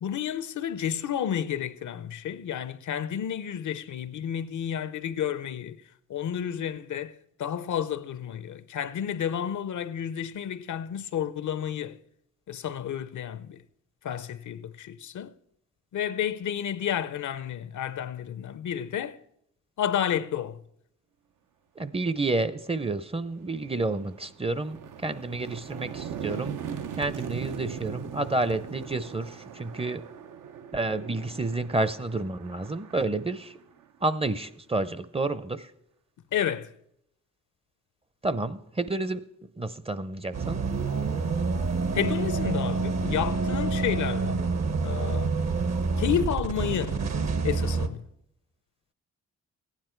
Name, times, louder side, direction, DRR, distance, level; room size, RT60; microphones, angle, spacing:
voice 1, 0.0-5.8 6.1-12.0 12.5-13.6 14.0-15.3 15.9-19.2 19.8-20.6 36.3-36.7 41.9-44.4 44.8-45.3 46.0-47.0 47.4-48.0, left 9 dB, 70° left, 0.6 m, -31 dB
voice 2, 21.8-26.6 27.0-30.0 30.7-33.6 34.0-35.7 38.2-39.2 39.6-40.6, right 2 dB, 20° right, 0.5 m, -30 dB
sound 1, 22.7-22.9 23.3-34.1, right 8 dB, 80° right, 0.7 m, -40 dB
sound 2, 40.3-47.9, right 4 dB, 60° right, 1.0 m, -27 dB
15.0 x 9.8 x 4.5 m
cardioid pair, 75°, 31 cm